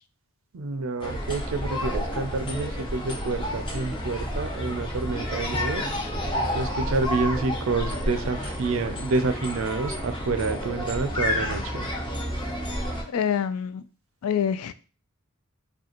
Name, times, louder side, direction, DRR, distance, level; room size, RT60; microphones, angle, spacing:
voice 1, 0.5-5.9 6.5-11.9, right 3 dB, 65° right, 10 dB, 0.4 m, -28 dB
sound 1, 1.0-13.0, equal, 20° left, 0.7 m, -30 dB
voice 2, 13.1-13.8 14.2-14.7, left 8 dB, 80° left, 13 dB, 0.3 m, -26 dB
4.8 x 2.3 x 2.9 m, 0.35 s
head